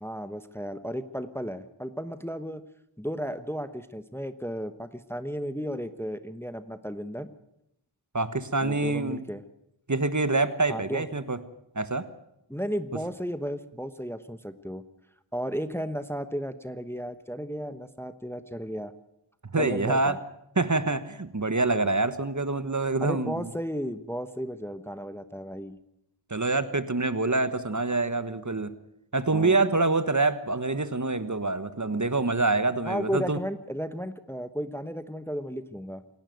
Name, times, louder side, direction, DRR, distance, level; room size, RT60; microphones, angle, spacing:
voice 1, 0.0-2.6 3.0-7.3 8.6-9.4 10.7-11.1 12.5-14.8 15.3-18.9 19.6-20.2 23.0-25.8 29.3-29.6 32.8-36.0, equal, 5° left, 11 dB, 1.1 m, -34 dB
voice 2, 8.1-9.2 9.9-11.4 11.7-12.1 19.5-20.2 20.6-23.5 26.3-28.7 29.1-33.4, right 3 dB, 40° right, 13 dB, 1.4 m, -26 dB
27.0 x 12.0 x 9.3 m, 0.81 s
wide cardioid pair, 60°, 46 cm